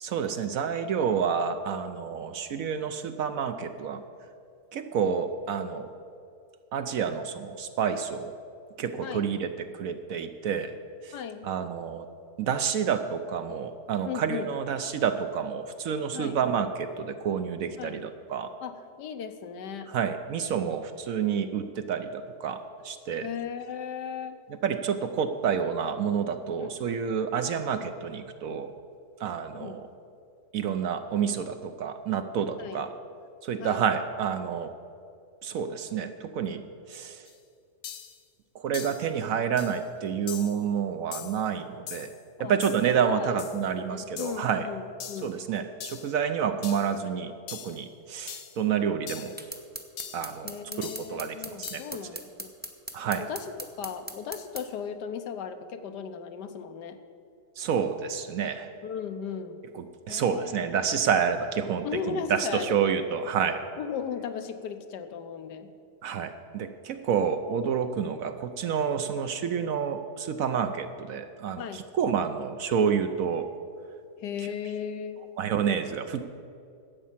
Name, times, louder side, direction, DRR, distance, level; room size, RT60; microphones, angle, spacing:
voice 1, 0.0-4.0 4.7-5.9 6.7-8.3 8.8-9.5 9.7-10.7 11.0-11.1 11.4-12.1 12.4-18.5 19.9-23.3 24.6-28.7 29.2-29.9 30.5-32.9 33.4-34.7 35.4-36.6 36.9-37.2 38.5-42.1 42.4-44.7 45.2-49.3 50.1-50.5 50.8-51.8 52.9-53.2 57.6-58.7 59.7-63.6 66.0-73.5 75.4-76.2, right 7 dB, 65° right, 9 dB, 0.9 m, -29 dB
voice 2, 9.0-9.3 11.1-11.5 14.0-14.5 16.1-16.4 17.8-18.0 18.6-19.9 23.2-24.4 26.6-26.7 29.5-29.8 32.6-32.8 33.6-33.9 42.4-42.5 43.0-45.4 50.4-52.5 53.2-57.0 58.8-59.6 60.1-60.7 61.8-62.9 63.8-65.7 71.6-71.8 74.2-75.2, left 7 dB, 85° left, 8 dB, 1.4 m, -36 dB
sound 1, 37.3-37.4 37.8-38.2 38.7-39.1 39.6-39.8 40.3-40.6 41.1-41.4 41.9-42.2 42.6-42.9 43.4-43.6 44.2-44.5 45.0-45.3 45.8-46.1 46.6-46.9 47.5-47.8 48.3-48.6 49.1-49.4 50.0-50.3 50.8-51.2 51.6-52.0, left 9 dB, 65° left, 1.1 m, -41 dB
sound 2, 49.4-54.7, right 1 dB, 10° right, 0.6 m, -39 dB
12.0 x 8.4 x 7.3 m, 2.5 s
omnidirectional pair, 1.8 m